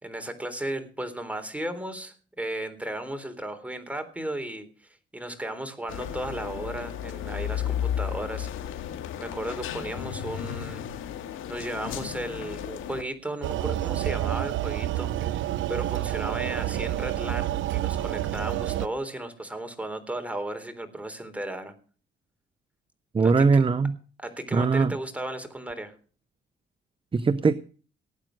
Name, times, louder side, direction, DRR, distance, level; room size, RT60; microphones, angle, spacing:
voice 1, 0.0-4.7 5.1-8.5 9.2-10.8 11.5-15.4 15.7-21.7 23.2-23.6 24.2-26.0, right 1 dB, 5° right, 3.7 m, -35 dB
sound 1, 5.9-13.0, left 9 dB, 85° left, 2.3 m, -33 dB
sound 2, 13.4-18.9, right 13 dB, 75° right, 0.8 m, -29 dB
voice 2, 23.1-24.0 24.5-24.9 27.1-27.5, right 4 dB, 25° right, 0.8 m, -21 dB
18.5 x 9.0 x 6.5 m
cardioid pair, 90°, 20 cm